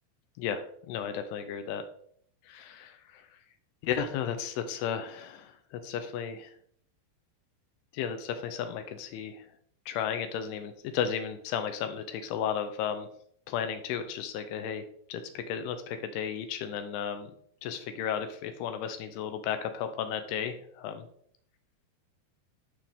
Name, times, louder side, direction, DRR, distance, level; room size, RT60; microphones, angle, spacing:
voice 1, 0.9-1.8 2.5-3.2 3.8-6.5 7.9-9.5 9.9-13.1 13.5-14.8 15.1-17.3 17.6-21.1, left 8 dB, 80° left, 9 dB, 2.4 m, -34 dB
11.5 x 4.8 x 3.5 m, 0.63 s
omnidirectional pair, 5.2 m